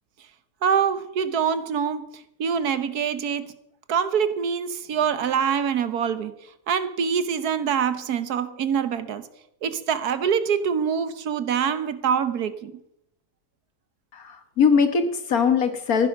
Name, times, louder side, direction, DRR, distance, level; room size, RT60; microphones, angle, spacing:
voice 1, 0.6-2.1 2.4-3.5 3.9-6.3 6.7-9.3 9.6-12.8, right 7 dB, 75° right, 12 dB, 1.5 m, -25 dB
voice 2, 14.1-16.1, left 6 dB, 65° left, 9 dB, 1.9 m, -21 dB
15.5 x 10.5 x 5.9 m, 0.77 s
omnidirectional pair, 1.7 m